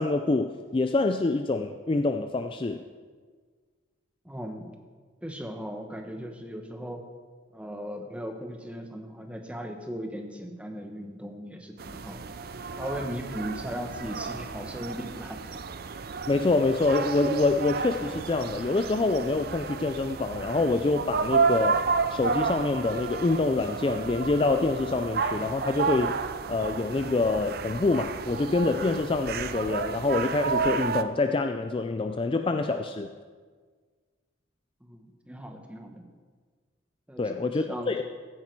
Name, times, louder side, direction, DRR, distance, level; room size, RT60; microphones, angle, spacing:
voice 1, 0.0-2.8 16.3-21.8 22.1-26.2 26.5-33.1 37.2-38.0, left 3 dB, 25° left, 7 dB, 0.3 m, -26 dB
voice 2, 4.2-4.7 5.2-7.1 7.5-12.2 12.8-15.6 34.8-36.0 37.1-37.9, equal, 5° right, 4 dB, 1.0 m, -38 dB
sound 1, 11.8-31.0, right 5 dB, 50° right, 0.5 m, -31 dB
15.5 x 9.1 x 4.6 m, 1.5 s
head